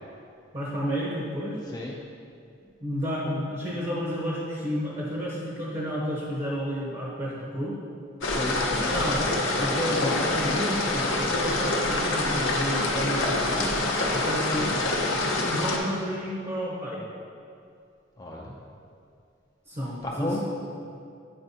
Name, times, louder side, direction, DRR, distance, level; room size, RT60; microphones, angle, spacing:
voice 1, 0.5-1.6 2.8-7.8 8.7-13.7 14.1-14.7 15.4-17.0 19.7-20.4, equal, 35° right, -6 dB, 0.9 m, -31 dB
voice 2, 1.7-2.0 8.3-9.3 14.6-14.8 18.2-18.6 20.0-20.4, left 1 dB, 20° left, -3 dB, 0.4 m, -34 dB
sound 1, 8.2-15.8, left 2 dB, 80° left, 0.8 m, -26 dB
8.8 x 4.3 x 2.8 m, 2.5 s
head